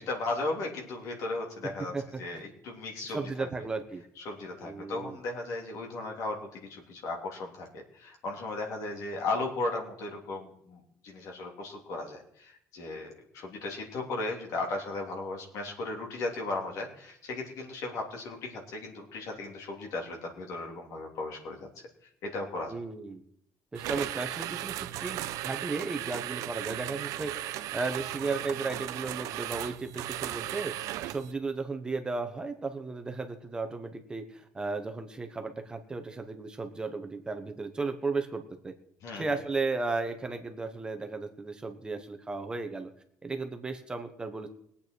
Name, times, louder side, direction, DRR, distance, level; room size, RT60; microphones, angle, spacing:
voice 1, 0.0-1.9 2.2-3.5 4.2-21.7 22.2-22.7 39.0-39.2, left 2 dB, 65° left, 0 dB, 3.2 m, -36 dB
voice 2, 1.6-2.4 3.1-4.0 4.6-5.2 22.7-23.2 23.7-38.7 39.2-42.9 43.2-44.5, right 3 dB, 15° right, 6 dB, 1.0 m, -35 dB
sound 1, 23.7-31.3, right 14 dB, 85° right, 0.6 m, -36 dB
21.5 x 8.5 x 4.6 m, 0.70 s
cardioid pair, 165°, 6 cm